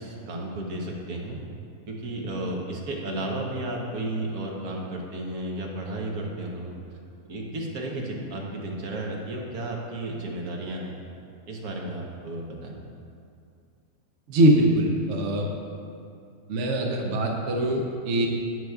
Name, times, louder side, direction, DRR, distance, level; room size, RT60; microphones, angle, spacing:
voice 1, 0.0-1.4 1.9-6.8 7.3-11.0 11.5-12.8, right 1 dB, 75° right, -1 dB, 1.5 m, -33 dB
voice 2, 14.3-15.4 16.5-18.3, right 1 dB, 60° right, 0 dB, 1.0 m, -22 dB
10.5 x 8.0 x 2.3 m, 2.5 s
omnidirectional pair, 1.6 m